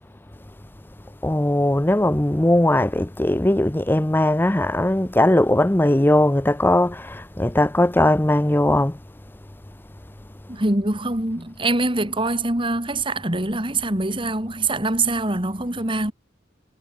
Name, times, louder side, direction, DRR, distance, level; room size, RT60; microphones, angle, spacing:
voice 1, 1.2-9.0, left 1 dB, 10° left, 0.6 m, -19 dB
voice 2, 10.5-16.1, right 2 dB, 25° right, 2.8 m, -24 dB
head